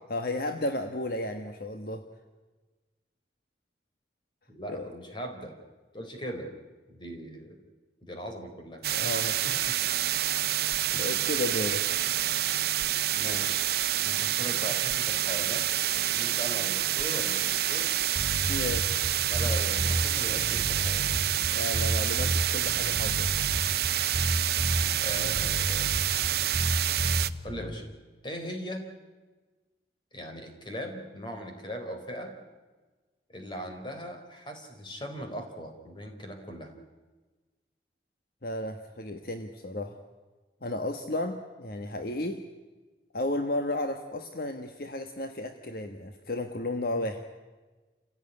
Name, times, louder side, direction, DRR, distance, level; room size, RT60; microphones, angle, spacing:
voice 1, 0.1-2.1 4.7-4.9 8.9-9.9 10.6-11.8 18.5-19.2 21.4-23.3 38.4-40.0 40.6-42.4 43.1-47.2, left 1 dB, 55° left, 7 dB, 1.3 m, -33 dB
voice 2, 4.5-5.5 5.9-6.5 6.9-7.6 8.0-9.1 9.4-9.5 10.9-11.2 13.2-13.6 14.0-15.7 15.9-17.9 19.3-21.1 25.0-26.0 27.4-27.9 28.2-28.9 30.1-32.3 33.3-36.7, equal, 25° left, 4 dB, 3.9 m, -39 dB
sound 1, 8.8-27.3, right 12 dB, 60° right, 0.8 m, -28 dB
sound 2, 18.1-27.8, right 1 dB, 30° right, 3.0 m, -31 dB
28.5 x 16.5 x 9.9 m, 1.3 s
head